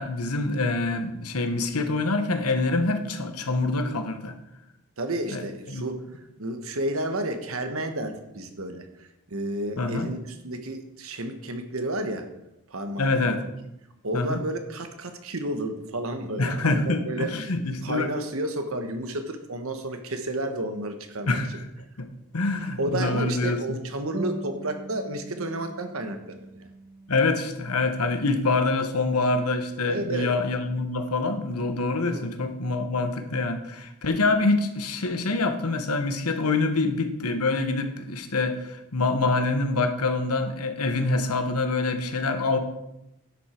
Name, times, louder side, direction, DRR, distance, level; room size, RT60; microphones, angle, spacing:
voice 1, 0.0-4.3 5.3-5.4 5.7-5.8 9.8-10.1 13.0-13.4 14.1-14.4 16.4-18.1 21.3-21.6 22.0-22.1 22.3-23.6 27.1-42.6, left 3 dB, 85° left, 7 dB, 1.2 m, -25 dB
voice 2, 5.0-12.3 12.7-13.4 14.0-17.3 17.8-21.4 22.5-26.7 29.9-30.3 32.0-32.3, right 1 dB, 65° right, 6 dB, 1.2 m, -31 dB
sound 1, 24.1-29.1, right 2 dB, 30° right, 0.7 m, -41 dB
11.0 x 7.9 x 4.4 m, 0.90 s
head